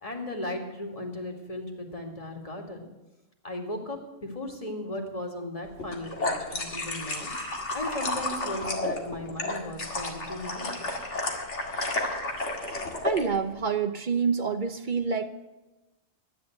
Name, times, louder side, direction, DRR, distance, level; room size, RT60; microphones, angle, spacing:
voice 1, 0.0-2.8 3.4-7.3 7.7-10.9, left 1 dB, 30° left, 2 dB, 2.5 m, -36 dB
sound 1, 5.8-13.2, left 2 dB, 85° left, 2.4 m, -32 dB
voice 2, 13.0-15.3, right 5 dB, 45° right, 8 dB, 1.0 m, -27 dB
13.5 x 10.5 x 7.9 m, 1.0 s
omnidirectional pair, 1.2 m